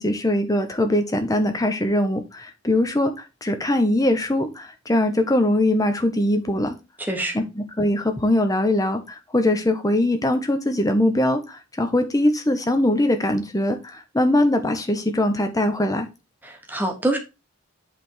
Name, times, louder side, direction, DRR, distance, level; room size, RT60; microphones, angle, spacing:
voice 1, 0.0-3.1 3.4-6.7 7.3-16.1, left 1 dB, 15° left, 0.8 m, -21 dB
voice 2, 7.0-7.4 16.4-17.2, right 1 dB, 10° right, 1.1 m, -25 dB
8.1 x 3.5 x 4.4 m
head